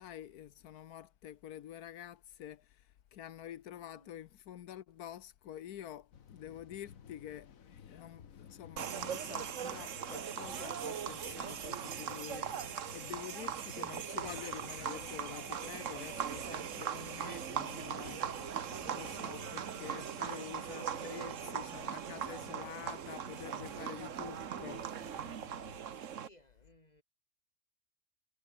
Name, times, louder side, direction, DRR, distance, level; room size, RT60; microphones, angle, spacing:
voice 1, 0.0-7.5 7.8-24.9, left 11 dB, 90° left, 1.4 m, -48 dB
voice 2, 3.9-4.2 26.2-27.0, left 1 dB, 25° left, 5.9 m, -63 dB
sound 1, 6.1-25.8, left 8 dB, 65° left, 1.6 m, -55 dB
sound 2, 8.8-26.3, right 8 dB, 60° right, 1.4 m, -40 dB
sound 3, 13.9-21.8, equal, 5° left, 7.0 m, -69 dB
omnidirectional pair, 1.6 m